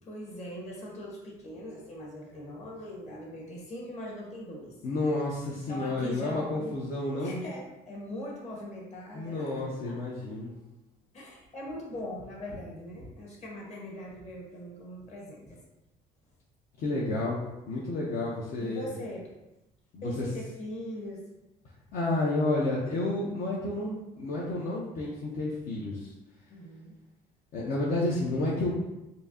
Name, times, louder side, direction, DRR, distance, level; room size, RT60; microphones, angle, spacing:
voice 1, 0.0-4.8 5.7-6.7 7.0-9.9 11.1-15.6 18.6-19.3 20.0-21.2 26.5-27.0, equal, 40° left, -3 dB, 1.4 m, -41 dB
voice 2, 4.8-7.4 9.1-10.5 16.8-17.4 17.7-18.8 19.9-20.3 21.9-26.1 27.5-28.9, left 2 dB, 60° left, -5 dB, 0.8 m, -30 dB
4.5 x 2.7 x 2.7 m, 0.95 s
cardioid pair, 110°, 17 cm